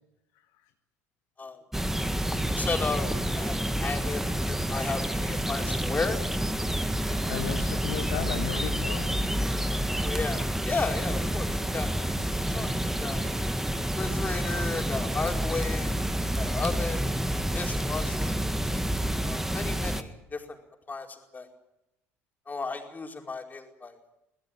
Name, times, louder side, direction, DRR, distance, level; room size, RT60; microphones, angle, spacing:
sound 1, 1.7-20.0, right 1 dB, 5° right, 1.8 m, -29 dB
voice 1, 2.6-6.2 10.0-11.9 12.3-13.2 14.0-15.9 16.3-17.0 17.5-18.3 19.2-20.6 20.9-21.5 22.5-23.9, left 4 dB, 25° left, 2 dB, 4.8 m, -34 dB
voice 2, 7.0-9.2, left 10 dB, 65° left, 6 dB, 1.5 m, -35 dB
22.5 x 18.5 x 8.9 m, 0.90 s
figure-of-eight pair, 55°, 7 cm